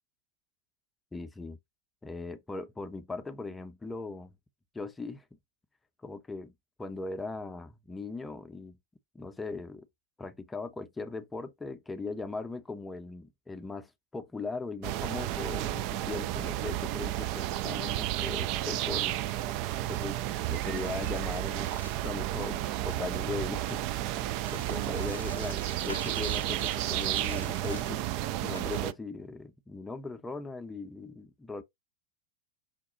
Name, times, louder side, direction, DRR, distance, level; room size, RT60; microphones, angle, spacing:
voice 1, 1.1-1.6 2.0-4.3 4.7-5.2 6.0-6.5 6.8-8.8 9.1-9.9 10.2-19.2 19.9-20.2 20.5-21.7 22.0-23.8 24.2-28.0 28.4-31.6, left 3 dB, 10° left, 0.7 m, -39 dB
sound 1, 14.8-28.9, right 14 dB, 45° right, 0.4 m, -32 dB
sound 2, 19.5-19.6 20.0-20.1 20.5-22.0 23.4-28.8, left 2 dB, 85° left, 0.6 m, -47 dB
5.8 x 2.2 x 4.0 m
figure-of-eight pair, 90°, 0 cm